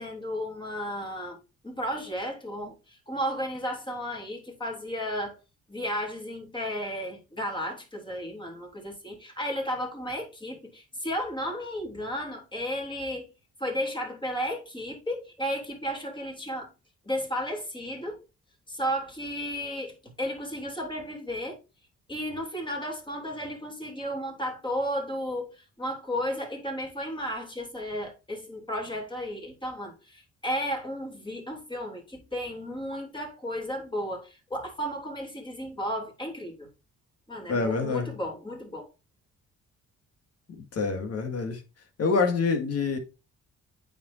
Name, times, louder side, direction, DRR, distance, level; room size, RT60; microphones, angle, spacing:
voice 1, 0.0-1.4 1.6-5.4 5.7-13.3 13.6-16.7 17.0-18.2 18.7-21.6 22.1-36.7 37.3-38.9, equal, 15° left, 3.1 m, -33 dB
voice 2, 37.5-38.1 40.7-41.6 42.0-43.0, left 4 dB, 55° left, 2.1 m, -26 dB
8.8 x 5.3 x 2.7 m
cardioid pair, 90°, 30 cm